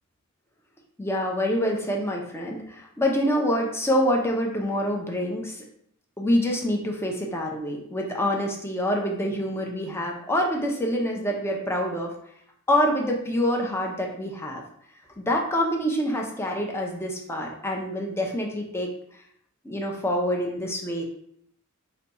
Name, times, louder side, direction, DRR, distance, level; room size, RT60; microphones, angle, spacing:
voice 1, 1.0-5.6 6.2-12.1 12.7-14.6 15.2-18.9 19.6-21.0, equal, 10° left, 0 dB, 0.6 m, -26 dB
4.0 x 2.3 x 4.0 m, 0.69 s
head